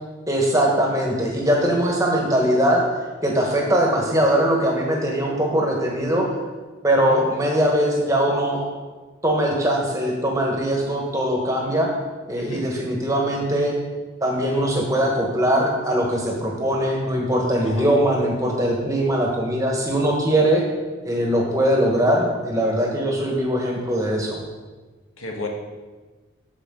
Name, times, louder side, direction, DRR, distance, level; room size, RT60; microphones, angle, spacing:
voice 1, 0.3-2.8 3.2-6.3 6.8-8.6 9.2-11.9 12.3-13.7 14.2-20.6 21.0-24.4, right 1 dB, 15° right, -1 dB, 1.2 m, -21 dB
voice 2, 25.2-25.5, left 2 dB, 85° left, 1 dB, 1.4 m, -32 dB
13.5 x 4.8 x 3.7 m, 1.3 s
head